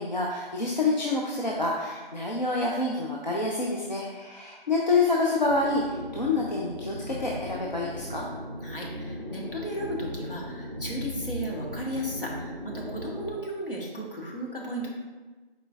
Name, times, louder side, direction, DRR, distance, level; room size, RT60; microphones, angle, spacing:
voice 1, 0.0-8.3, left 3 dB, 50° left, -3 dB, 0.5 m, -27 dB
sound 1, 5.4-13.4, left 1 dB, 45° right, 0.4 m, -38 dB
voice 2, 8.6-14.9, equal, 65° left, -2 dB, 1.3 m, -35 dB
4.7 x 4.3 x 2.4 m, 1.3 s
figure-of-eight pair, 170°, 29 cm